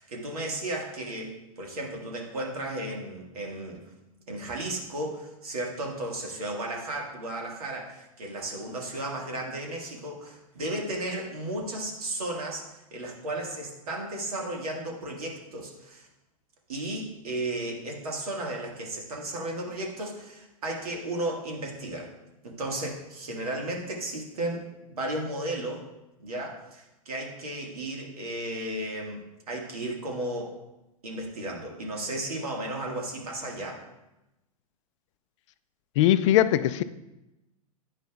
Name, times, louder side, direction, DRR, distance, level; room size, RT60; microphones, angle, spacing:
voice 1, 0.0-3.8 4.3-16.1 16.7-22.1 22.4-25.8 26.2-29.2 29.5-30.6 31.0-33.8, right 1 dB, 75° right, 0 dB, 1.6 m, -34 dB
voice 2, 36.0-36.8, left 12 dB, 55° left, 14 dB, 0.4 m, -20 dB
9.7 x 5.3 x 2.3 m, 0.96 s
hypercardioid pair, 100°, 19 cm